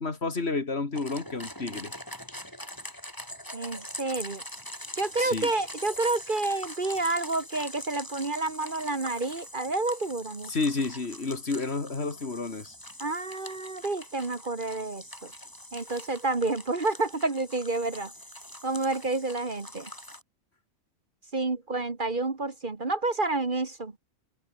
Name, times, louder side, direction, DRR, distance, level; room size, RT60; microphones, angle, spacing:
voice 1, 0.0-1.9 5.2-5.5 10.5-12.7, left 3 dB, 50° left, 2.6 m, -30 dB
sound 1, 0.9-20.2, equal, 15° left, 6.5 m, -43 dB
voice 2, 3.5-4.4 5.0-10.5 13.0-15.3 15.7-18.1 18.6-19.9 21.3-23.9, right 3 dB, 40° right, 1.8 m, -29 dB
omnidirectional pair, 1.4 m